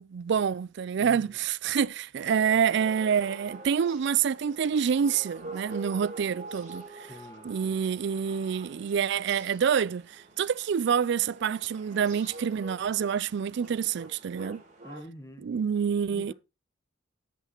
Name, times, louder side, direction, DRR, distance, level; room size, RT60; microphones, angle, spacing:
voice 1, 0.0-6.8 7.4-14.6 15.4-16.3, right 7 dB, 60° right, 0.4 m, -27 dB
voice 2, 1.0-1.4 7.1-7.8 14.8-15.5 16.1-16.3, left 1 dB, 15° left, 1.3 m, -46 dB
sound 1, 2.2-15.0, right 2 dB, 40° right, 3.4 m, -46 dB
10.0 x 8.1 x 3.0 m
head